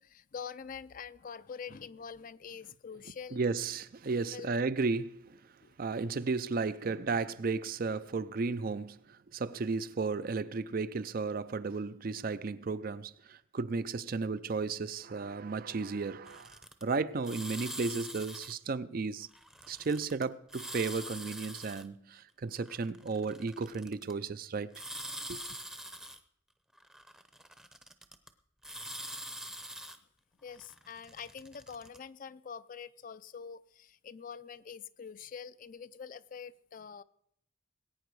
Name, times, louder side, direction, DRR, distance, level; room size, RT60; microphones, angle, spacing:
voice 1, 0.0-3.4 4.3-4.5 5.6-5.7 30.4-37.0, left 6 dB, 45° left, 0.4 m, -45 dB
voice 2, 3.3-5.5 5.8-19.3 19.7-24.7 25.3-25.4, right 4 dB, 50° right, 0.5 m, -34 dB
sound 1, 16.3-16.8 17.2-18.5 19.3-20.2 20.5-21.9 22.6-24.1 24.7-26.2 26.8-28.3 28.6-30.0 30.5-32.0, right 1 dB, 5° right, 0.7 m, -44 dB
20.0 x 9.2 x 4.7 m
head